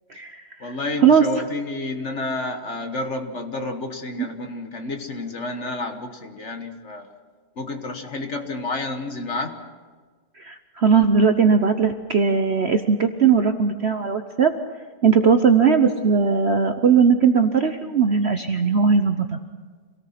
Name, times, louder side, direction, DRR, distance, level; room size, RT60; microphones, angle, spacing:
voice 1, 0.1-1.5 4.2-4.3 10.4-14.5 15.0-19.4, right 6 dB, 50° right, 7 dB, 0.9 m, -19 dB
voice 2, 0.6-7.0 7.6-9.6, left 2 dB, 45° left, 6 dB, 1.6 m, -30 dB
26.5 x 17.5 x 5.9 m, 1.5 s
omnidirectional pair, 1.9 m